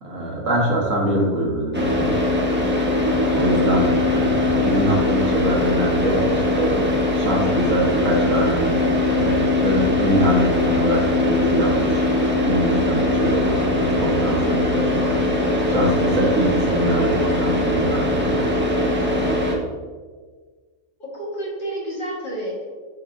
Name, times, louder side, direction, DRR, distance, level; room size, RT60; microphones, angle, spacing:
voice 1, 0.0-2.1 3.3-6.8 7.1-8.8 9.1-18.5, right 1 dB, 65° right, -3 dB, 1.7 m, -24 dB
Car / Idling, 1.7-19.5, left 2 dB, 10° right, 0.6 m, -21 dB
voice 2, 21.0-22.6, right 1 dB, 35° left, -5 dB, 1.5 m, -30 dB
10.5 x 3.7 x 2.6 m, 1.5 s
omnidirectional pair, 1.5 m